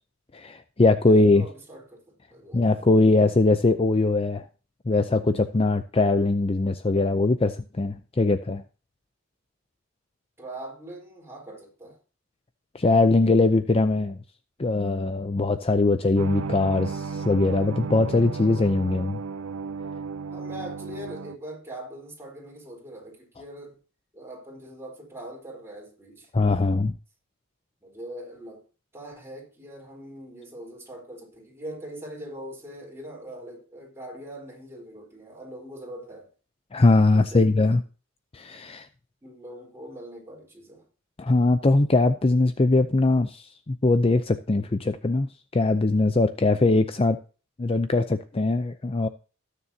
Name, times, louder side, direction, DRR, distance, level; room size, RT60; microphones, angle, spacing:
voice 1, 0.3-1.5 2.5-4.4 4.9-8.6 12.7-14.2 14.6-19.2 26.3-26.9 36.7-37.8 38.3-38.9 41.2-47.2 47.6-49.1, left 2 dB, 25° left, 0.5 m, -21 dB
voice 2, 1.1-2.8 10.4-12.0 20.3-23.8 24.1-26.3 27.8-28.6 28.9-36.3 37.1-37.8 39.2-40.9 46.5-46.7, right 1 dB, 10° right, 4.1 m, -42 dB
sound 1, 16.2-21.4, right 5 dB, 75° right, 0.5 m, -34 dB
18.5 x 6.9 x 2.8 m
head